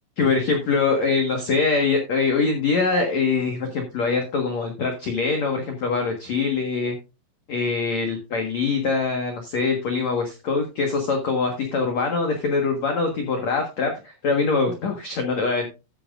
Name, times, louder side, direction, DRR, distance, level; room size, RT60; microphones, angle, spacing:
voice 1, 0.2-7.0 7.5-15.7, left 4 dB, 85° left, 3 dB, 1.5 m, -23 dB
13.5 x 9.0 x 2.5 m, 0.29 s
omnidirectional pair, 5.7 m